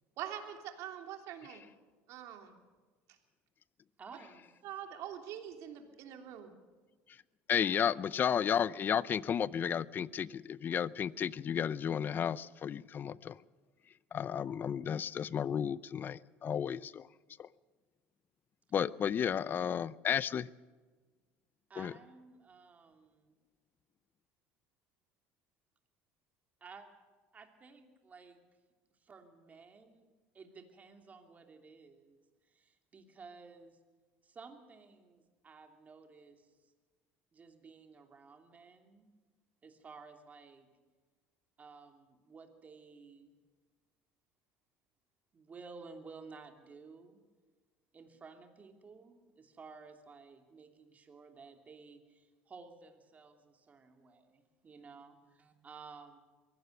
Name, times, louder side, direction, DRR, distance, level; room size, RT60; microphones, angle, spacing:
voice 1, 0.2-1.6 2.1-2.6 4.6-6.5, right 10 dB, 65° right, 5 dB, 3.1 m, -44 dB
voice 2, 4.0-4.5 21.7-23.4 26.6-26.9 27.3-28.4 28.9-33.8 34.2-36.6 37.3-39.1 39.6-40.8 41.6-43.4 45.3-47.2 47.9-56.2, right 4 dB, 30° right, 5 dB, 2.9 m, -54 dB
voice 3, 7.5-13.4 14.1-17.1 17.4-17.5 18.7-20.5 21.8-21.9, left 8 dB, 35° left, 20 dB, 0.6 m, -33 dB
23.0 x 17.0 x 6.7 m, 1.4 s
supercardioid pair, 110°, 6 cm